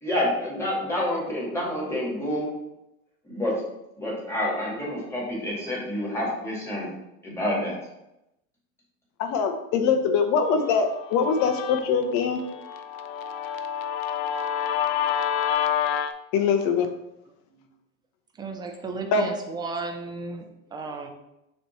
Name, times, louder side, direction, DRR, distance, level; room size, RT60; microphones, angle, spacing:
voice 1, 0.0-2.5 3.2-3.6 4.0-6.9 7.2-7.7, left 1 dB, 5° left, -5 dB, 2.1 m, -28 dB
voice 2, 9.2-12.4 16.3-16.9 19.1-19.2, left 5 dB, 40° left, 6 dB, 0.9 m, -23 dB
Guitar, 10.6-16.1, left 9 dB, 70° left, 0.7 m, -29 dB
voice 3, 18.4-21.1, right 3 dB, 10° right, 4 dB, 0.4 m, -34 dB
6.8 x 3.2 x 4.4 m, 0.86 s
supercardioid pair, 135°, 43 cm